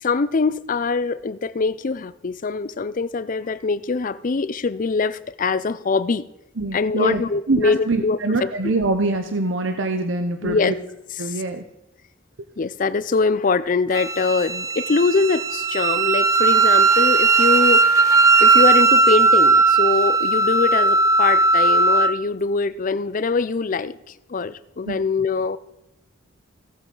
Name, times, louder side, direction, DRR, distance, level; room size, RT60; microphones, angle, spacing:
voice 1, 0.0-6.3 6.7-8.7 10.4-10.8 11.1-11.4 12.6-17.9 18.4-23.9 24.3-25.6, left 4 dB, 40° left, 16 dB, 0.5 m, -23 dB
voice 2, 6.6-7.2 7.5-10.7 11.2-11.6 24.9-25.0, right 2 dB, 70° right, 7 dB, 0.8 m, -24 dB
Wind instrument woodwind instrument, 13.9-22.1, right 3 dB, 15° right, 0.5 m, -17 dB
17.5 x 7.5 x 3.8 m, 0.96 s
head